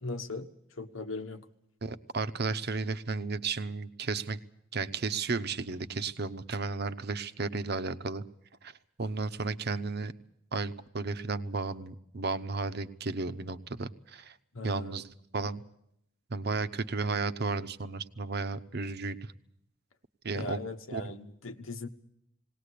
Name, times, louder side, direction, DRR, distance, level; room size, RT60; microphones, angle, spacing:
voice 1, 0.0-0.5 0.8-1.4 14.5-15.0 20.3-21.9, left 3 dB, 85° left, 8 dB, 1.3 m, -39 dB
voice 2, 1.8-4.4 4.7-8.2 8.6-8.7 9.0-10.1 10.5-14.3 14.6-15.1 15.3-15.6 16.3-19.2 20.2-20.6 20.9-21.0, right 4 dB, 55° right, 12 dB, 0.9 m, -33 dB
19.5 x 18.5 x 8.4 m, 0.76 s
head